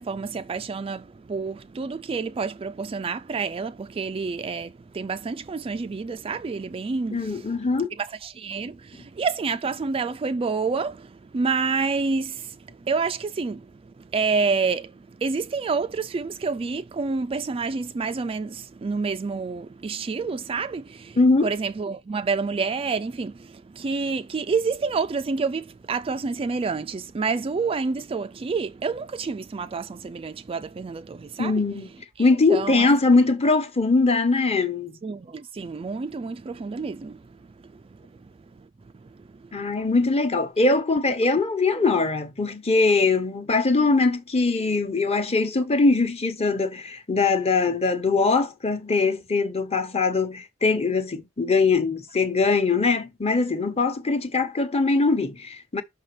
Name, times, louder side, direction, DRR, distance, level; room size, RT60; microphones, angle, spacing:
voice 1, 0.0-7.6 8.0-31.6 32.2-32.9 35.0-39.9, right 4 dB, 25° right, 0.3 m, -29 dB
voice 2, 7.1-7.9 21.2-21.5 31.4-31.9 32.2-34.9 39.5-55.8, left 3 dB, 30° left, 1.1 m, -22 dB
6.0 x 5.5 x 3.2 m
head